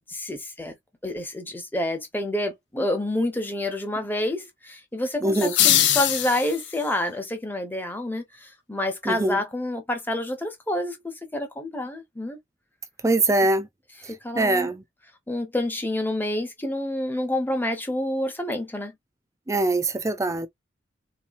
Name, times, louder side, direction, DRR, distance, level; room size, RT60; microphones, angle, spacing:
voice 1, 0.1-0.8 1.0-12.4 14.0-14.7 15.3-18.9, left 1 dB, 10° left, 1.0 m, -28 dB
voice 2, 5.2-5.5 9.1-9.4 13.0-13.7 14.4-14.8 19.5-20.5, right 2 dB, 15° right, 0.5 m, -22 dB
sound 1, 5.3-6.9, left 11 dB, 65° left, 0.7 m, -22 dB
3.9 x 3.0 x 2.5 m
head